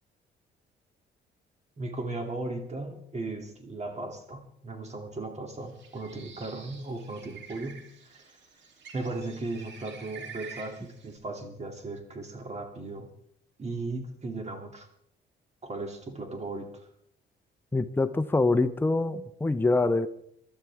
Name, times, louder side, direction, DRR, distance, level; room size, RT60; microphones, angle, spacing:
voice 1, 1.8-8.2 8.9-13.1 13.6-14.9 15.6-16.9, right 2 dB, 35° right, 4 dB, 2.8 m, -37 dB
Bird, 5.6-11.2, right 6 dB, 65° right, 3.0 m, -48 dB
voice 2, 17.7-20.1, left 3 dB, 10° left, 9 dB, 0.7 m, -25 dB
24.5 x 12.5 x 3.6 m, 0.70 s
cardioid pair, 90°, 20 cm